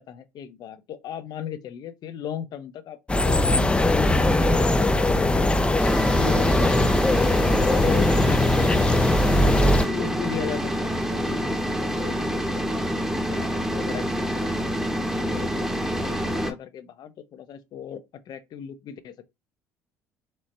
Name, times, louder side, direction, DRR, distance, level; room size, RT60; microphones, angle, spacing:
voice 1, 0.0-5.5 6.2-6.9 7.5-9.0 9.4-14.8 15.2-19.3, left 9 dB, 55° left, 0.6 m, -37 dB
sound 1, 3.1-9.9, left 1 dB, 15° left, 0.4 m, -20 dB
sound 2, 5.8-16.5, equal, 5° right, 0.8 m, -27 dB
4.3 x 2.1 x 3.0 m
hypercardioid pair, 60°, 8 cm